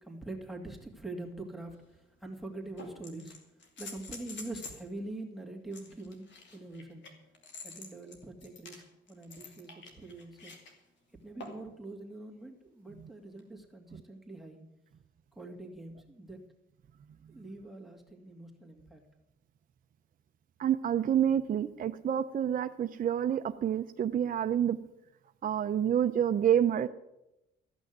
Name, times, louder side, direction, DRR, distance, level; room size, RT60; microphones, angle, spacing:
voice 1, 0.0-3.3 3.8-7.0 7.6-8.8 9.1-10.5 11.2-14.6 15.3-16.4 17.3-19.0, right 2 dB, ahead, 4 dB, 2.3 m, -44 dB
sound 1, 1.7-1.8 2.8-4.9 5.7-10.7 11.4-11.7 13.4-13.5, left 3 dB, 65° left, 2.7 m, -47 dB
voice 2, 20.6-24.8 25.4-26.9, right 9 dB, 45° right, 7 dB, 0.6 m, -28 dB
14.0 x 6.2 x 9.3 m, 0.91 s
cardioid pair, 90°, 20 cm